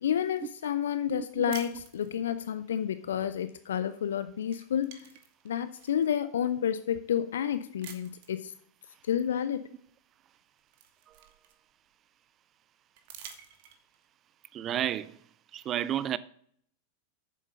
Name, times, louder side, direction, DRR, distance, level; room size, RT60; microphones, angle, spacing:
voice 1, 0.0-5.1 5.4-8.5 9.0-9.6, left 9 dB, 65° left, 0.4 m, -30 dB
voice 2, 1.1-1.6 14.5-15.2 15.5-16.2, right 11 dB, 30° right, 0.4 m, -32 dB
sound 1, 1.5-2.5 3.9-4.1 4.4-6.1 6.7-6.8 7.8-8.4 9.9-10.0 10.3-11.9 13.0-14.1, right 8 dB, 50° right, 1.2 m, -49 dB
8.3 x 7.4 x 5.5 m
figure-of-eight pair, 90°, 0 cm